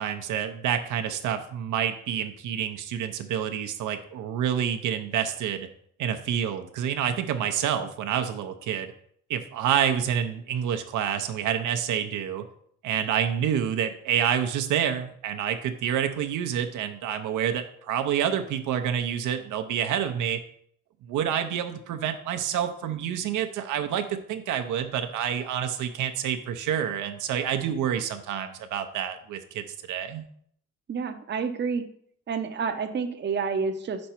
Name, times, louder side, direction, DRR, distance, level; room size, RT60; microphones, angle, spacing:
voice 1, 0.0-5.7 6.0-8.9 9.3-12.4 12.8-20.4 21.1-30.2, right 9 dB, 80° right, 7 dB, 0.7 m, -28 dB
voice 2, 30.9-31.8 32.3-34.0, right 5 dB, 35° right, 8 dB, 0.7 m, -29 dB
5.2 x 4.6 x 4.4 m, 0.65 s
cardioid pair, 90°, 30 cm